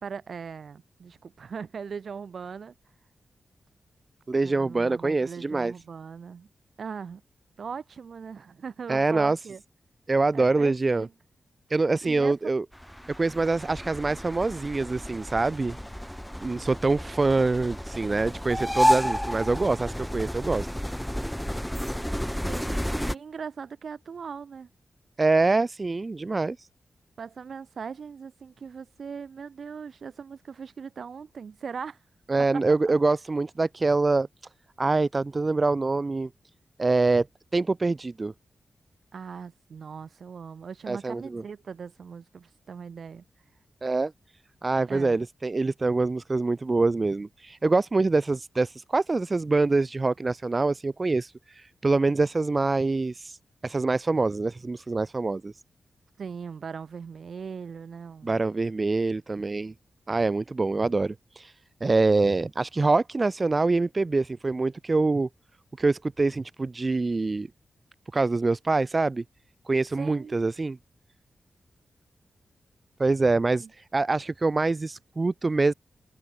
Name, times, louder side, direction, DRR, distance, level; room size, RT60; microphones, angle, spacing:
voice 1, 0.0-2.7 4.4-6.5 6.8-7.2 7.6-9.6 10.3-11.1 12.0-12.5 22.4-24.7 27.2-32.0 32.5-32.9 39.1-43.2 44.9-45.2 56.2-58.4 70.0-70.4 73.6-73.7, right 6 dB, 65° right, 2.1 m, -39 dB
voice 2, 4.3-5.7 8.9-9.4 10.1-11.1 11.7-12.6 13.2-15.8 16.4-20.7 25.2-26.7 32.3-34.3 34.8-36.3 36.8-37.3 37.5-38.3 40.9-41.4 43.8-44.1 44.6-53.4 53.6-55.5 58.2-59.7 60.1-61.5 61.8-65.3 65.8-67.5 68.1-69.2 69.7-70.8 73.0-75.7, right 3 dB, 30° right, 0.7 m, -25 dB
sound 1, 12.7-23.1, equal, ahead, 1.6 m, -30 dB
wide cardioid pair, 115°, 0 cm